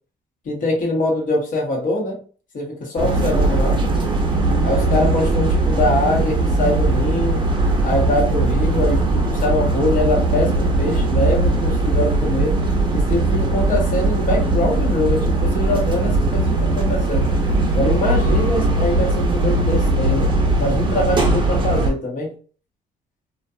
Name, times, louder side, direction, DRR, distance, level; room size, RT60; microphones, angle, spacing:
voice 1, 0.4-2.2 2.5-3.8 4.6-7.5 7.8-12.6 12.9-17.3 17.7-22.3, left 2 dB, 50° left, -1 dB, 1.1 m, -23 dB
sound 1, 3.0-21.9, right 2 dB, 30° right, 0.7 m, -19 dB
2.6 x 2.4 x 2.2 m, 0.40 s
cardioid pair, 110°, 17 cm